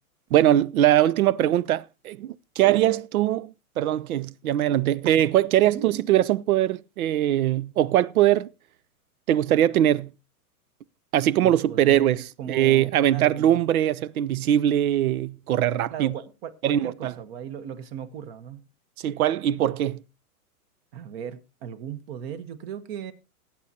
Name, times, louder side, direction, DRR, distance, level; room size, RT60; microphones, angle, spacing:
voice 1, 0.3-8.5 9.3-10.1 11.1-16.1 16.6-17.1 19.0-20.0, right 12 dB, 70° right, 0.7 m, -22 dB
voice 2, 5.7-6.0 11.4-13.6 15.9-18.6 20.9-23.1, right 8 dB, 40° right, 1.2 m, -37 dB
19.0 x 8.7 x 2.8 m
hypercardioid pair, 140°, 45 cm